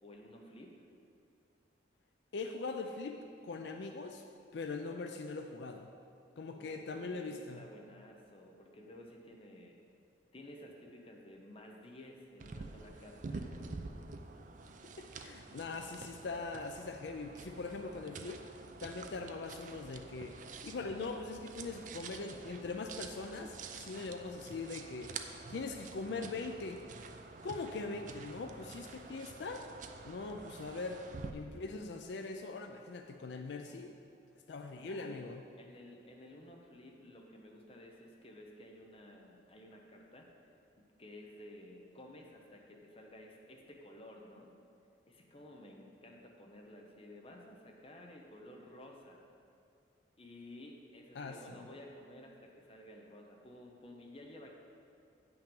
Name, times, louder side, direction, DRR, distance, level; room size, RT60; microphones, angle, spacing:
voice 1, 0.0-0.8 6.5-9.8 10.3-13.7 34.8-35.2 35.6-40.3 41.0-44.5 45.1-49.2 50.2-54.5, left 1 dB, 30° left, 1 dB, 0.8 m, -53 dB
voice 2, 2.3-4.2 4.5-5.9 6.4-7.6 14.8-18.4 18.8-26.8 27.4-29.7 30.0-31.0 31.3-33.9 34.5-35.4 51.2-51.7, left 3 dB, 65° left, 5 dB, 0.4 m, -42 dB
sound 1, 12.4-31.3, right 4 dB, 45° right, 0.4 m, -48 dB
8.9 x 5.9 x 5.3 m, 2.4 s
head